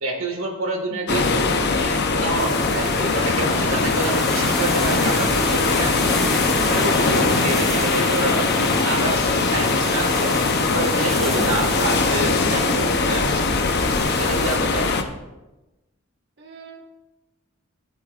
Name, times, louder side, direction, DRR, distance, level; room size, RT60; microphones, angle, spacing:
voice 1, 0.0-6.2 6.7-10.4 10.7-13.5 14.2-15.1, right 2 dB, 75° right, 2 dB, 1.8 m, -28 dB
sound 1, 1.1-15.0, left 3 dB, 55° left, 0.8 m, -21 dB
sound 2, 2.3-14.6, equal, ahead, 2.1 m, -30 dB
voice 2, 16.4-16.9, right 1 dB, 55° right, -2 dB, 1.5 m, -39 dB
15.5 x 8.3 x 2.5 m, 1.0 s
head